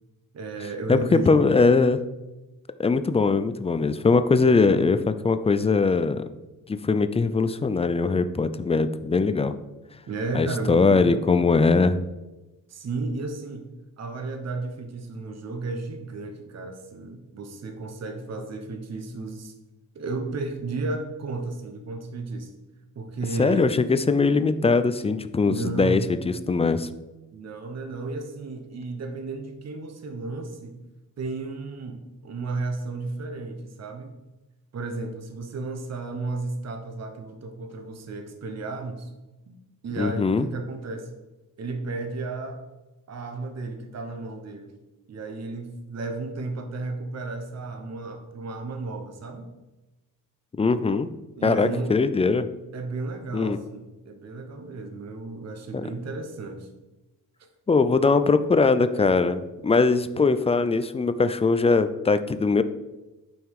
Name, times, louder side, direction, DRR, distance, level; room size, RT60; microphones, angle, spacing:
voice 1, 0.3-1.4 10.1-11.2 12.7-13.7 14.0-19.5 19.9-22.5 22.9-23.7 25.5-26.2 27.3-30.8 31.2-34.1 34.7-39.1 39.5-41.1 41.6-42.6 43.1-44.7 45.1-49.5 51.4-52.0 52.7-56.7, right 3 dB, 50° right, 5 dB, 1.0 m, -33 dB
voice 2, 0.9-2.0 2.8-6.3 6.7-9.5 10.3-12.0 23.4-26.9 40.0-40.5 50.6-51.1 51.4-52.5 53.3-53.6 55.7-55.8 57.7-62.6, left 4 dB, 20° left, 11 dB, 0.3 m, -21 dB
9.1 x 5.5 x 4.8 m, 1.1 s
wide cardioid pair, 155°, 35 cm